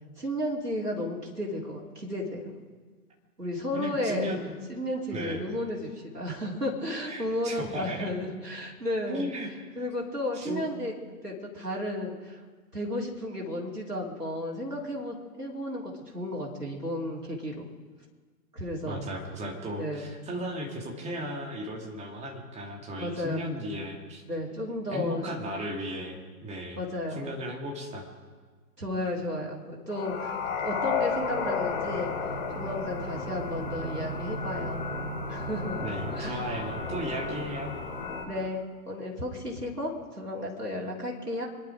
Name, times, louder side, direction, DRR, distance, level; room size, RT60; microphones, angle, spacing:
voice 1, 0.2-2.5 3.4-4.3 4.7-9.3 9.7-10.9 11.2-12.4 12.7-17.7 18.5-19.1 19.8-20.1 23.0-23.4 24.2-25.3 26.8-27.3 28.8-30.4 30.6-32.1 32.5-34.8 35.3-35.9 36.1-36.5 38.2-41.5, left 1 dB, 90° right, -3 dB, 3.3 m, -33 dB
voice 2, 3.7-4.4 5.1-5.4 7.0-8.1 9.1-9.5 10.3-10.7 18.8-24.2 24.9-26.8 27.2-28.1 35.8-37.7, equal, 15° right, 0 dB, 2.5 m, -35 dB
sound 1, 29.9-38.2, left 4 dB, 35° left, 6.3 m, -33 dB
26.0 x 11.0 x 5.0 m, 1.5 s
figure-of-eight pair, 115°, 46 cm